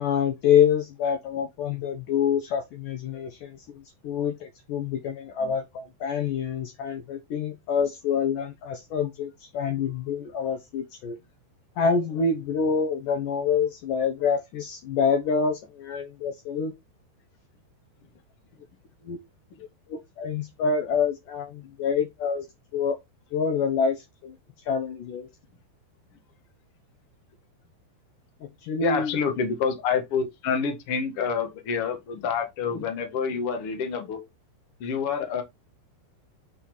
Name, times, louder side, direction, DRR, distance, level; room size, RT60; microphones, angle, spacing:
voice 1, 0.0-11.2 11.8-16.7 19.0-19.2 19.9-22.5 22.7-23.0 23.3-25.3 28.6-29.2, left 6 dB, 85° left, 1.8 m, -26 dB
voice 2, 28.8-34.2 34.8-35.4, left 6 dB, 55° left, 1.6 m, -27 dB
9.3 x 4.5 x 4.5 m
omnidirectional pair, 5.4 m